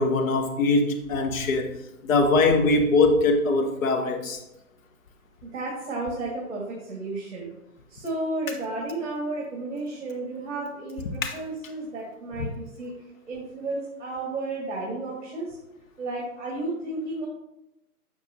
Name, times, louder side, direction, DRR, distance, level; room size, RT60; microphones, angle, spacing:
voice 1, 0.0-1.7 2.0-4.4 11.2-11.3, left 3 dB, 60° left, 3 dB, 1.0 m, -22 dB
voice 2, 5.4-7.5 7.9-12.9 13.3-15.6 16.0-17.3, right 2 dB, 55° right, -3 dB, 1.9 m, -32 dB
6.5 x 6.0 x 2.7 m, 0.89 s
hypercardioid pair, 150°, 45 cm